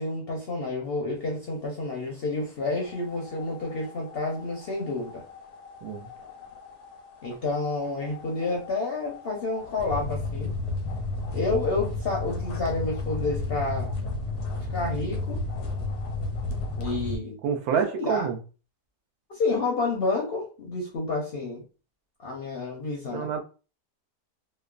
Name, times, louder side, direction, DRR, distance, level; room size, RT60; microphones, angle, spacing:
voice 1, 0.0-5.2 7.2-10.5 11.3-13.9 14.7-15.4 16.8-17.3 17.9-18.3 19.3-21.6 22.2-23.3, left 3 dB, 60° left, 0.6 m, -29 dB
sound 1, 2.8-17.2, left 3 dB, 85° left, 1.1 m, -34 dB
voice 2, 17.4-18.4 23.1-23.4, right 7 dB, 75° right, 1.0 m, -27 dB
2.9 x 2.1 x 2.3 m
omnidirectional pair, 1.7 m